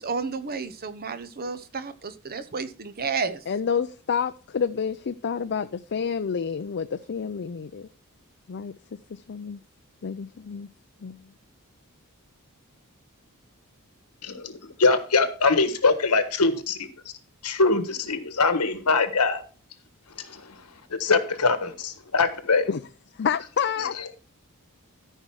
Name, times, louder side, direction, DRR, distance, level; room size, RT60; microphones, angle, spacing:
voice 1, 0.0-3.4, right 5 dB, 45° right, 0.9 m, -31 dB
voice 2, 3.5-5.7 5.9-7.9 8.5-8.7 9.1-9.6 10.0-10.7 11.0-11.2 22.7-22.8 23.2-23.9, left 6 dB, 50° left, 0.5 m, -28 dB
voice 3, 14.2-16.9 17.4-19.4 20.2-20.6 21.0-22.7 23.8-24.0, left 3 dB, 85° left, 1.4 m, -23 dB
13.5 x 5.5 x 4.7 m
head